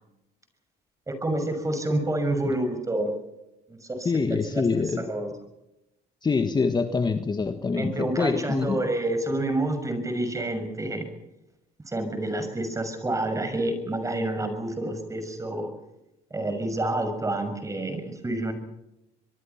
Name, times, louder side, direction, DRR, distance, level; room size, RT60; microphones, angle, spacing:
voice 1, 1.1-3.1 3.7-4.6 5.1-5.3 7.8-11.1 11.9-15.7 16.3-18.5, right 1 dB, 20° right, 8 dB, 6.6 m, -28 dB
voice 2, 4.0-5.0 6.2-8.8, left 4 dB, 25° left, 8 dB, 1.5 m, -25 dB
25.0 x 23.0 x 5.9 m, 0.89 s
cardioid pair, 110°, 17 cm